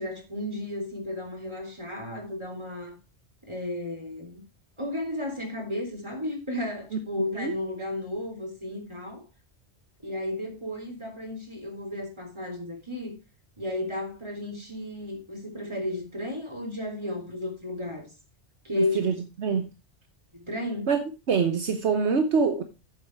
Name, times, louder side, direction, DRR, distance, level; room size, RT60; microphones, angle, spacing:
voice 1, 0.0-3.0 3.4-4.4 4.8-9.2 10.0-13.1 13.6-18.1 18.6-19.0 20.3-20.9, left 1 dB, 25° right, 3.4 m, -33 dB
voice 2, 18.7-19.7 20.9-21.0 21.3-22.6, right 5 dB, 70° right, 1.3 m, -25 dB
9.7 x 7.3 x 4.6 m
omnidirectional pair, 1.2 m